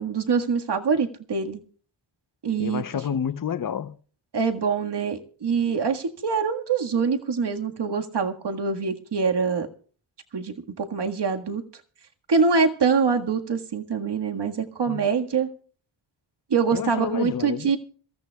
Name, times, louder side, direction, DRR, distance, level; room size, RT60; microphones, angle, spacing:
voice 1, 0.0-1.6 2.4-2.9 4.3-9.7 10.3-11.6 12.3-15.5 16.5-17.8, right 5 dB, 55° right, 1.8 m, -24 dB
voice 2, 2.6-4.0 14.9-15.1 16.7-17.7, left 8 dB, 40° left, 0.8 m, -29 dB
26.5 x 14.0 x 2.3 m
cardioid pair, 70°, 49 cm